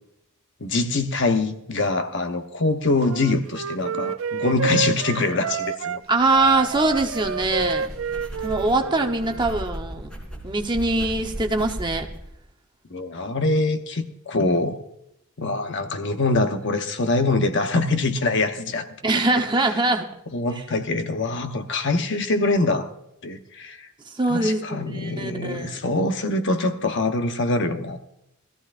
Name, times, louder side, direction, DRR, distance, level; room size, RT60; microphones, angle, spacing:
voice 1, 0.6-6.0 12.9-14.8 15.4-18.9 20.3-22.9 23.2-23.9 24.3-28.0, left 2 dB, 55° left, 1.0 m, -24 dB
Wind instrument woodwind instrument, 3.1-6.0 6.3-9.7, right 6 dB, 60° right, 0.4 m, -29 dB
sound 1, 6.1-12.2, equal, 5° left, 3.6 m, -37 dB
voice 2, 6.1-7.9 8.4-10.1 10.4-12.1 19.0-20.1 24.1-25.8, right 2 dB, 20° right, 0.9 m, -23 dB
20.5 x 14.5 x 2.5 m
head